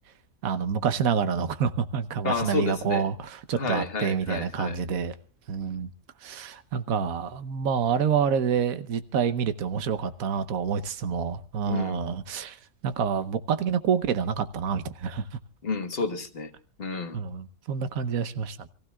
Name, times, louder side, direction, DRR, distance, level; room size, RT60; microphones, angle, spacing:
voice 1, 0.4-5.1 5.5-5.9 6.2-12.6 12.8-15.3 17.1-18.7, right 7 dB, 80° right, 1.3 m, -27 dB
voice 2, 2.2-3.1 3.6-4.8 11.6-12.0 15.6-16.5 16.8-17.2, left 3 dB, 45° left, 1.4 m, -30 dB
27.5 x 15.5 x 2.3 m
omnidirectional pair, 1.4 m